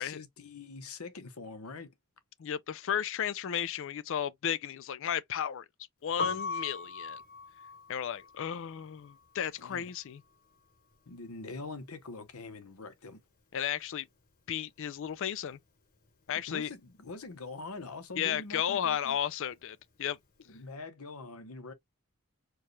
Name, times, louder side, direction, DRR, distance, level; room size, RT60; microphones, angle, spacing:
voice 1, 0.0-1.9 9.6-9.9 11.1-13.2 16.5-19.2 20.5-21.7, left 3 dB, 90° left, 0.9 m, -44 dB
voice 2, 2.4-5.7 6.0-7.2 7.9-10.2 13.5-14.1 14.5-15.6 16.3-16.7 18.2-20.2, left 9 dB, 65° left, 0.4 m, -34 dB
Piano, 6.1-12.0 12.3-13.9 14.1-20.6, left 4 dB, 45° left, 0.9 m, -42 dB
4.6 x 2.3 x 3.1 m
head